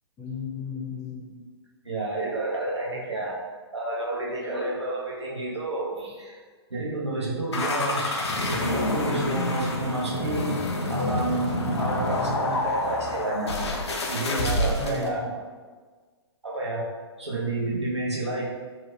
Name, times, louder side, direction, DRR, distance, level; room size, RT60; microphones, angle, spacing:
voice 1, 0.2-1.4 2.9-3.2 4.4-4.6 14.6-15.3, left 5 dB, 20° left, -2 dB, 0.5 m, -35 dB
voice 2, 1.8-3.4 3.7-6.4 6.7-8.2 8.5-10.5 10.9-13.5 14.1-15.2 16.4-18.4, right 2 dB, 85° right, -4 dB, 0.8 m, -30 dB
sound 1, 7.5-15.1, left 2 dB, 75° left, 0.5 m, -28 dB
2.9 x 2.1 x 3.2 m, 1.5 s
figure-of-eight pair, 115°, 14 cm